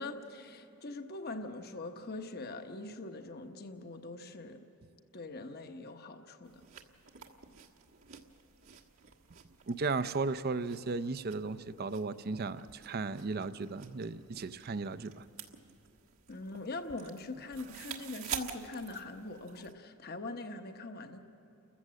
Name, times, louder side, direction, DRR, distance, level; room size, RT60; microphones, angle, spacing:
voice 1, 0.0-4.6 5.1-6.6 16.3-21.2, left 2 dB, 45° left, 7 dB, 1.1 m, -42 dB
sound 1, 6.4-19.7, right 7 dB, 75° right, 1.5 m, -49 dB
voice 2, 9.7-15.2, right 4 dB, 45° right, 14 dB, 0.6 m, -35 dB
29.5 x 14.5 x 7.6 m, 2.8 s
head